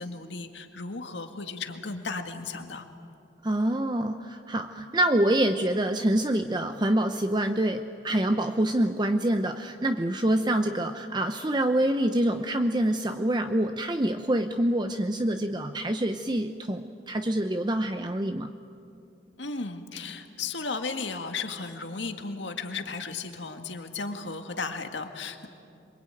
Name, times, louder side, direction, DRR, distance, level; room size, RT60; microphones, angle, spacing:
voice 1, 0.0-2.9 19.4-25.5, left 4 dB, 90° left, 6 dB, 2.0 m, -35 dB
voice 2, 3.4-18.5, right 1 dB, 25° right, 7 dB, 0.7 m, -26 dB
26.5 x 23.5 x 9.1 m, 2.6 s
head